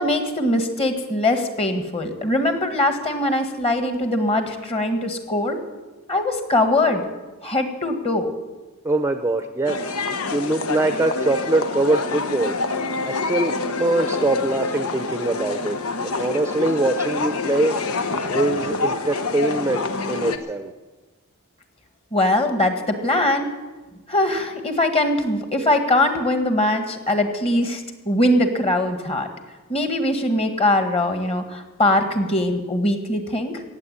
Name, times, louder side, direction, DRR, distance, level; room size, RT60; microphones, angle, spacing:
voice 1, 0.0-5.6 6.1-7.1 7.4-8.3 22.1-23.5 24.1-29.3 29.7-33.6, left 1 dB, 25° left, 6 dB, 1.6 m, -21 dB
voice 2, 8.8-9.8 10.3-12.5 13.0-15.8 16.0-17.8 18.3-20.7, right 2 dB, 15° right, 8 dB, 0.6 m, -23 dB
sound 1, 9.6-20.4, left 3 dB, 85° left, 1.1 m, -27 dB
17.0 x 8.0 x 9.8 m, 1.2 s
head